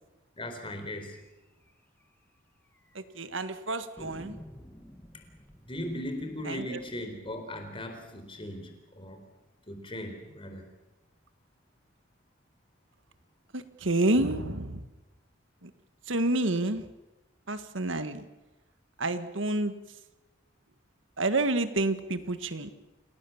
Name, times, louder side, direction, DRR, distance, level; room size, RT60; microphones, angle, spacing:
voice 1, 0.4-1.2 5.7-9.2 9.7-10.7, left 1 dB, 25° left, 5 dB, 4.2 m, -38 dB
sound 1, 1.1-1.3 1.6-1.7 2.0-2.1 2.7-3.3 4.0-8.8, equal, 10° left, 1.9 m, -52 dB
voice 2, 3.0-4.4 6.5-6.8 13.5-14.8 15.6-15.7 16.1-16.9 17.5-18.3 19.0-19.7 21.2-22.7, right 2 dB, 75° right, 11 dB, 1.7 m, -29 dB
28.5 x 18.0 x 7.2 m, 1.1 s
head